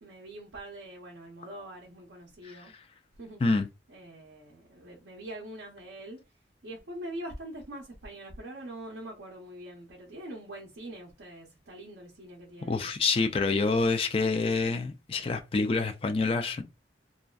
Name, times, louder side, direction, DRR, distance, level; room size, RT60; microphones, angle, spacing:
voice 1, 0.0-2.7 3.2-3.4 3.9-6.2 6.6-12.9, right 1 dB, 70° right, 0.6 m, -43 dB
voice 2, 12.6-16.6, left 3 dB, 30° left, 0.3 m, -27 dB
2.5 x 2.2 x 2.2 m
head